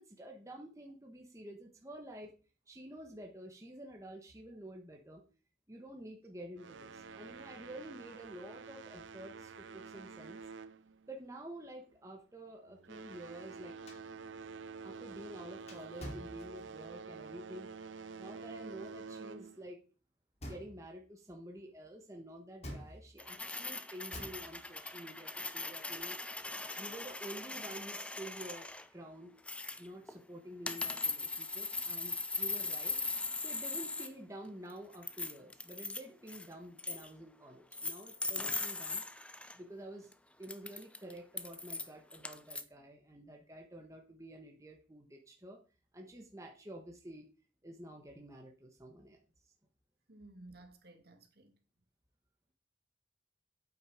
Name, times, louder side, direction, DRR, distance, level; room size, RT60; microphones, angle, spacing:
voice 1, 0.0-2.3 2.7-5.2 5.7-10.4 11.1-13.8 14.8-17.7 18.2-19.8 20.4-26.2 26.8-29.3 29.8-33.0 33.4-39.0 39.5-40.1 40.4-45.6 45.9-47.3 47.6-49.2, right 1 dB, 15° right, 1.4 m, -49 dB
sound 1, 6.6-11.5 11.8-12.1 12.7-19.7, right 5 dB, 80° right, 0.6 m, -48 dB
sound 2, 13.9-17.0 20.4-21.1 22.6-23.5 24.1-25.0 26.2-27.1, equal, 35° left, 2.5 m, -49 dB
sound 3, 23.2-28.9 29.5-30.2 30.7-34.1 34.5-36.0 36.3-36.5 36.8-37.1 37.7-39.6 40.1-40.2 40.4-42.6, left 3 dB, 5° left, 0.5 m, -40 dB
voice 2, 50.1-51.6, right 2 dB, 55° right, 2.1 m, -55 dB
8.9 x 8.0 x 5.0 m
head